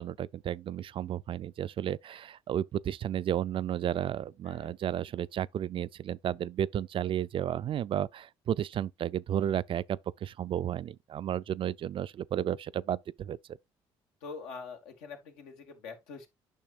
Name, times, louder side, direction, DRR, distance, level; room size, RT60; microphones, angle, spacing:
voice 1, 0.0-13.4, right 10 dB, 50° right, 0.4 m, -33 dB
voice 2, 4.4-4.8 14.2-16.3, left 5 dB, 85° left, 1.6 m, -44 dB
9.1 x 5.8 x 2.4 m
supercardioid pair, 65°, 12 cm